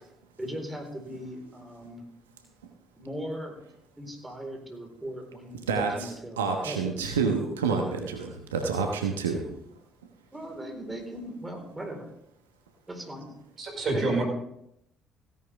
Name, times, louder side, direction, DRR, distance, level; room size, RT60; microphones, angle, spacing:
voice 1, 0.4-2.1 3.0-3.6 4.0-7.1 10.3-12.1 12.9-13.3 13.9-14.2, right 1 dB, 15° right, 2 dB, 4.2 m, -38 dB
voice 2, 5.7-6.1 6.4-9.4, right 5 dB, 85° right, 3 dB, 1.1 m, -28 dB
voice 3, 13.6-14.2, right 2 dB, 50° right, 1 dB, 5.1 m, -27 dB
16.5 x 10.5 x 3.5 m, 0.76 s
hypercardioid pair, 50°, 0 cm